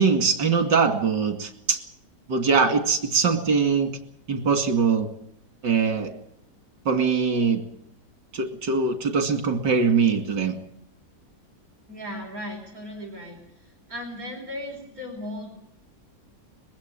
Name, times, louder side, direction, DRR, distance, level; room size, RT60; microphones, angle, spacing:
voice 1, 0.0-1.8 2.3-3.9 4.3-5.1 5.6-6.1 6.9-7.6 8.3-10.5, right 5 dB, 90° right, 7 dB, 3.0 m, -22 dB
voice 2, 11.9-13.4 13.9-15.6, left 1 dB, 55° right, 1 dB, 5.0 m, -36 dB
21.0 x 15.5 x 9.0 m, 0.74 s
omnidirectional pair, 1.8 m